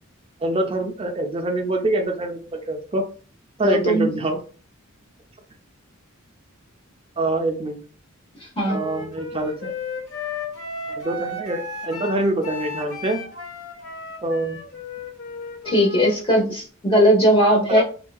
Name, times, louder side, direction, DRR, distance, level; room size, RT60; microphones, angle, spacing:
voice 1, 0.4-3.1 3.6-4.4 7.2-7.8 8.7-9.7 10.9-13.2 14.2-14.6 17.8-17.9, right 2 dB, 25° right, 4 dB, 0.5 m, -25 dB
voice 2, 3.6-4.1 8.6-8.8 15.6-17.8, equal, 25° left, -1 dB, 0.9 m, -18 dB
Wind instrument woodwind instrument, 8.7-16.2, left 3 dB, 75° left, 1.1 m, -34 dB
3.2 x 2.7 x 2.2 m, 0.38 s
head